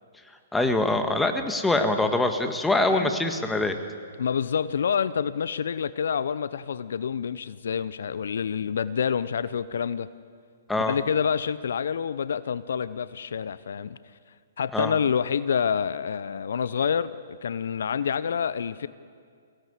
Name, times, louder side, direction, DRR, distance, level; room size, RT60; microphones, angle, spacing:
voice 1, 0.5-3.7 10.7-10.9 14.7-14.9, left 2 dB, 5° left, 6 dB, 1.7 m, -24 dB
voice 2, 4.2-10.1 10.8-14.0 14.6-18.9, left 7 dB, 65° left, 16 dB, 0.6 m, -27 dB
23.5 x 17.5 x 8.2 m, 2.1 s
figure-of-eight pair, 125°, 0 cm